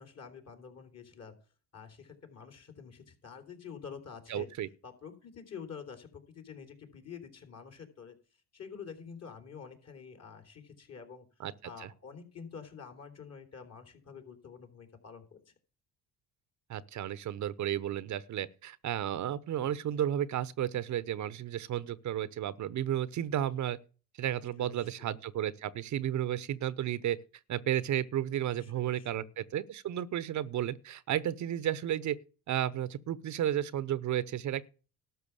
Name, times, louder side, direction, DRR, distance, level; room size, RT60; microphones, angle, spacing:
voice 1, 0.0-1.3 1.7-4.5 4.8-8.1 8.5-11.2 11.6-15.5 19.5-19.8 24.3-25.1 28.6-29.3, left 6 dB, 45° left, 3.4 m, -48 dB
voice 2, 4.3-4.7 11.4-11.5 11.8-11.9 16.7-23.8 24.2-27.2 27.5-32.2 32.5-34.7, right 11 dB, 55° right, 0.8 m, -33 dB
12.5 x 5.8 x 7.1 m
supercardioid pair, 75°, 35 cm